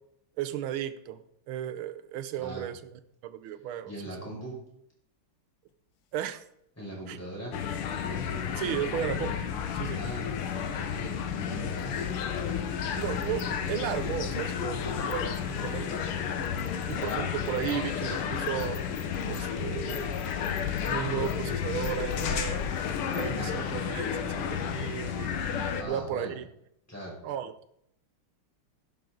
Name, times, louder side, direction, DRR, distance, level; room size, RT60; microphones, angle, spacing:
voice 1, 0.4-1.2 1.5-4.3 6.1-6.4 7.1-7.2 8.6-10.0 12.9-16.0 16.9-18.8 19.2-20.2 20.8-22.6 23.1-25.4 25.8-26.5 27.2-27.5, right 10 dB, 75° right, 12 dB, 1.7 m, -35 dB
voice 2, 3.9-4.6 6.8-7.5 10.0-10.3 10.7-12.1 23.3-23.7 24.6-24.8 25.8-26.4 26.9-27.2, right 1 dB, 5° left, -4 dB, 5.9 m, -40 dB
sound 1, 7.5-25.8, left 7 dB, 85° left, 2.0 m, -32 dB
sound 2, 7.9-8.0 9.0-9.7 10.0-10.1 10.5-23.5, left 9 dB, 60° left, 1.0 m, -47 dB
12.0 x 11.5 x 3.9 m, 0.75 s
omnidirectional pair, 2.4 m